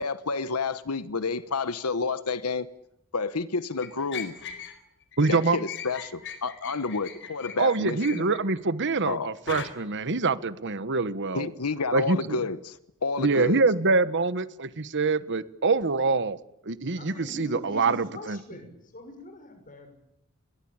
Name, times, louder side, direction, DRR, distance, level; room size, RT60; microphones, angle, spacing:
voice 1, 0.0-2.7 3.1-4.3 5.3-8.3 9.0-9.3 11.3-13.6, left 4 dB, 90° left, 1.2 m, -30 dB
sound 1, 3.8-4.8 5.1-8.5 9.5-9.7, left 8 dB, 55° left, 4.4 m, -39 dB
voice 2, 5.2-5.6 7.6-11.5 11.9-12.4 13.2-16.4 16.6-18.4, right 3 dB, 55° right, 1.3 m, -25 dB
voice 3, 17.0-20.0, left 1 dB, 40° left, 6.3 m, -43 dB
29.5 x 22.5 x 8.9 m
head